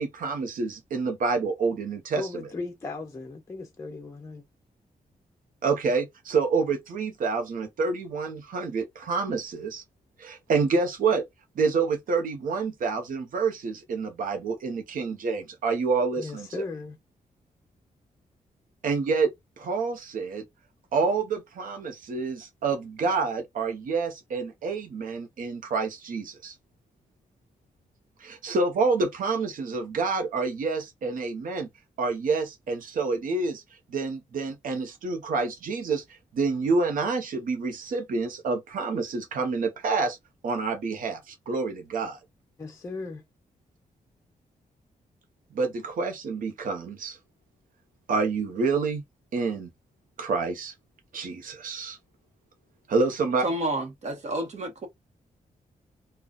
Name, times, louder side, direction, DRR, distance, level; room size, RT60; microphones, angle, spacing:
voice 1, 0.0-2.2 5.6-9.8 10.2-11.2 11.6-16.5 18.8-19.3 19.6-20.4 20.9-26.5 28.2-31.7 32.0-33.6 33.9-40.2 40.4-42.2 45.5-47.2 48.1-49.0 49.3-49.7 50.2-50.7 51.1-52.0 52.9-53.4, right 4 dB, 75° right, 0.8 m, -28 dB
voice 2, 2.2-4.4 16.2-17.0 42.6-43.2, left 3 dB, 20° left, 0.5 m, -36 dB
voice 3, 53.4-54.9, right 1 dB, 55° right, 1.1 m, -30 dB
3.8 x 2.3 x 2.4 m
wide cardioid pair, 155°, 14 cm